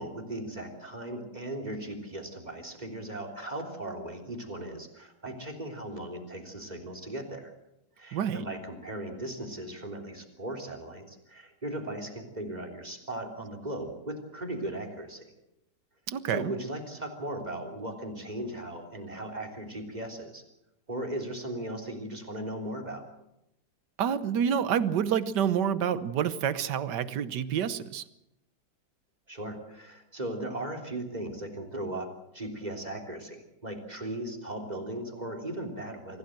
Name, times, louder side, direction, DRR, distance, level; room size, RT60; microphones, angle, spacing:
voice 1, 0.0-7.5 8.0-15.3 16.3-20.4 20.9-23.0 29.3-36.2, right 1 dB, 25° right, 3 dB, 3.5 m, -37 dB
voice 2, 8.1-8.4 16.1-16.5 24.0-28.0, right 8 dB, 85° right, 14 dB, 1.6 m, -28 dB
25.5 x 16.5 x 7.8 m, 0.86 s
omnidirectional pair, 1.8 m